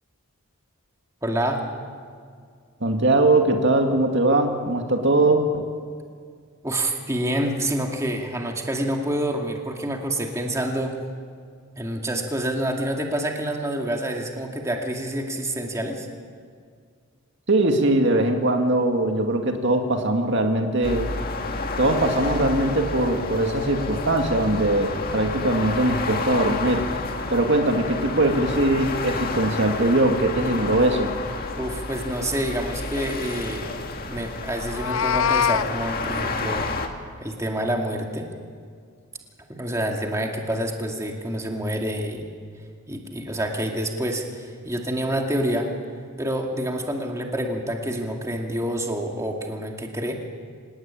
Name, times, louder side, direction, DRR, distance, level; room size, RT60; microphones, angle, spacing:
voice 1, 1.2-1.6 6.6-10.9 11.8-16.1 31.6-33.8 34.0-36.7 37.2-38.3 39.5-42.3 42.9-45.7 46.2-50.2, right 1 dB, 15° right, 1 dB, 2.4 m, -27 dB
voice 2, 2.8-5.6 17.5-21.1 21.8-26.9 27.3-31.1, right 2 dB, 55° right, 4 dB, 2.2 m, -21 dB
sound 1, 20.8-36.9, left 3 dB, 45° left, 2.1 m, -30 dB
Meow, 34.6-35.7, left 8 dB, 70° left, 0.6 m, -23 dB
26.5 x 19.0 x 9.0 m, 2.1 s
head